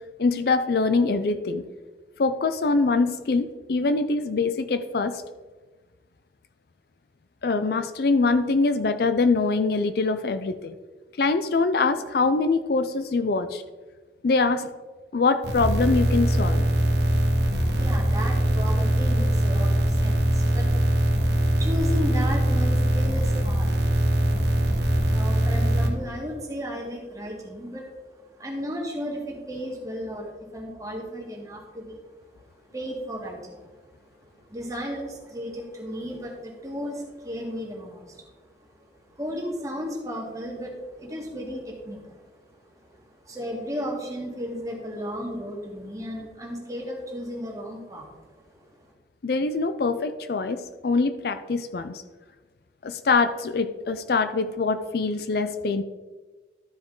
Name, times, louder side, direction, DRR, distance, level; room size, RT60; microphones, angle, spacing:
voice 1, 0.2-1.6 2.2-5.2 7.4-10.7 11.2-13.6 14.2-14.7 15.1-16.7 49.2-52.0 52.8-55.8, left 3 dB, 60° left, 10 dB, 0.4 m, -24 dB
sound 1, 15.4-25.9, equal, 70° right, 1.4 m, -22 dB
voice 2, 17.5-32.1 32.5-33.8 34.2-48.7, equal, 20° right, -1 dB, 1.7 m, -35 dB
13.0 x 5.0 x 3.8 m, 1.3 s
head